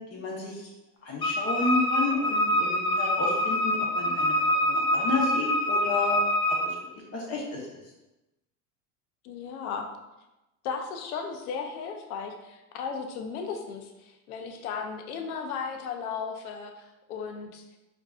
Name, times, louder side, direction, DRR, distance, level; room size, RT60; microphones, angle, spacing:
voice 1, 0.1-0.6 1.0-4.3 4.6-6.2 6.5-6.7 7.1-7.6, left 3 dB, 35° left, -2 dB, 0.9 m, -31 dB
Wind instrument woodwind instrument, 1.2-6.7, left 1 dB, 15° left, 0.3 m, -25 dB
voice 2, 9.2-9.9 10.6-17.8, left 6 dB, 85° left, 4 dB, 0.7 m, -35 dB
4.4 x 2.7 x 2.4 m, 1.0 s
supercardioid pair, 105°, 42 cm